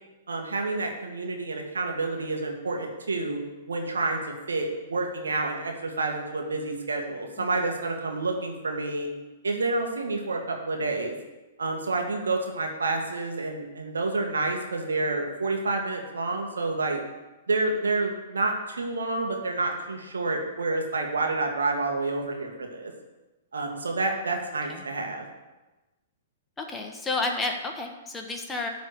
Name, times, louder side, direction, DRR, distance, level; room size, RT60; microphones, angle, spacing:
voice 1, 0.3-3.4 3.7-4.2 4.5-9.1 9.4-11.1 11.6-17.0 17.5-22.9 23.5-25.3, right 3 dB, 70° right, 2 dB, 1.8 m, -29 dB
voice 2, 26.6-28.7, left 3 dB, 15° left, 2 dB, 1.4 m, -31 dB
12.5 x 4.1 x 8.2 m, 1.1 s
figure-of-eight pair, 110°, 0 cm